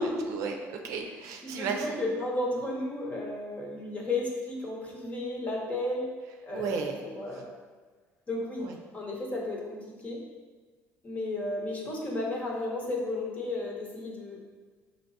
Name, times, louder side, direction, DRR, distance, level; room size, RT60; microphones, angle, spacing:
voice 1, 0.0-2.1 6.5-7.0 8.6-8.7, right 5 dB, 70° right, 3 dB, 0.5 m, -34 dB
voice 2, 1.4-6.1 6.4-7.5 8.3-10.3 11.0-14.4, left 2 dB, 25° left, -2 dB, 0.9 m, -33 dB
5.7 x 2.9 x 2.7 m, 1.4 s
cardioid pair, 120°, 6 cm